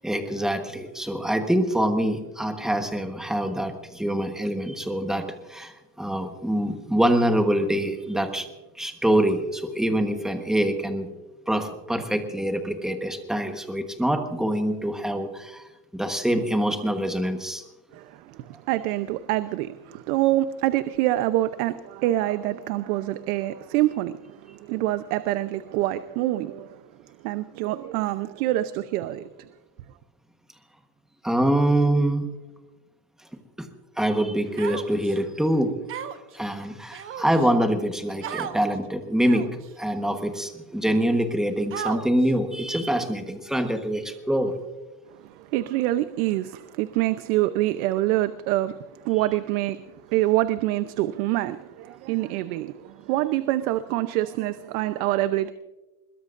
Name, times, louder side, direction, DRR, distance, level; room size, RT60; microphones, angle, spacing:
voice 1, 0.0-8.5 8.7-11.1 11.5-15.7 15.9-17.6 31.2-32.3 33.6-33.7 34.0-35.8 36.3-44.6, right 1 dB, ahead, 1.2 m, -25 dB
voice 2, 17.9-26.8 27.2-29.5 45.2-55.5, right 15 dB, 75° right, 0.9 m, -26 dB
Human voice, 34.6-35.2 35.9-36.3 36.9-37.5 38.2-38.6 39.2-39.6 40.3-40.4 41.7-42.3, right 9 dB, 30° right, 1.0 m, -34 dB
22.0 x 21.5 x 2.6 m
cardioid pair, 160°, 44 cm